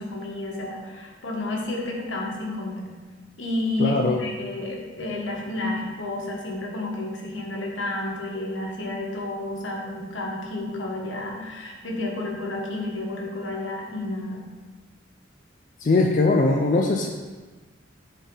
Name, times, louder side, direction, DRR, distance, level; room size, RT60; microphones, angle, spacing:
voice 1, 0.0-2.9 3.4-14.4, left 2 dB, 75° left, -1 dB, 1.4 m, -31 dB
voice 2, 3.8-4.2 15.8-17.1, left 3 dB, 40° left, 2 dB, 0.4 m, -20 dB
10.5 x 4.1 x 3.8 m, 1.3 s
head